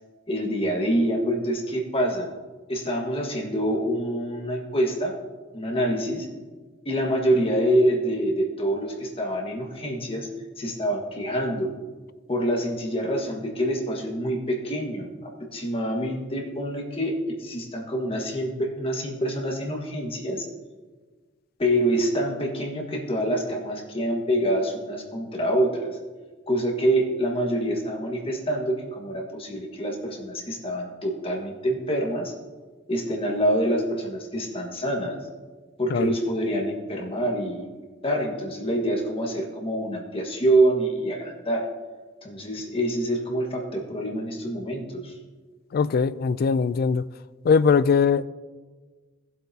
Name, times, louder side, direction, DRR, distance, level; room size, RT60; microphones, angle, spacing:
voice 1, 0.3-2.3 2.7-5.1 5.5-6.3 6.8-10.3 10.6-11.7 12.3-20.5 21.6-26.0 26.5-32.3 32.9-35.2 35.8-37.7 38.0-41.7 42.2-45.1, right 1 dB, 30° left, 1.5 m, -26 dB
voice 2, 45.7-47.1 47.4-48.3, left 5 dB, 55° left, 0.3 m, -21 dB
15.5 x 7.8 x 2.8 m
head